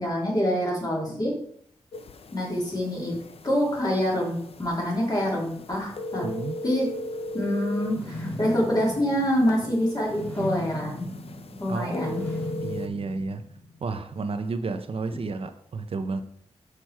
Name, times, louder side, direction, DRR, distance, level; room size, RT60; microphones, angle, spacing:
voice 1, 0.0-1.3 2.3-3.1 3.4-6.2 6.6-6.9 7.3-11.1 11.6-12.2, equal, 35° left, -3 dB, 3.0 m, -26 dB
sound 1, 1.9-12.9, left 1 dB, 60° left, 0.6 m, -39 dB
voice 2, 6.2-6.6 11.7-12.1 12.6-13.4 13.8-16.2, right 3 dB, 60° right, 8 dB, 0.7 m, -31 dB
sound 2, 7.8-13.8, left 1 dB, 10° left, 2.4 m, -37 dB
6.4 x 5.8 x 4.6 m, 0.65 s
wide cardioid pair, 100°, 11 cm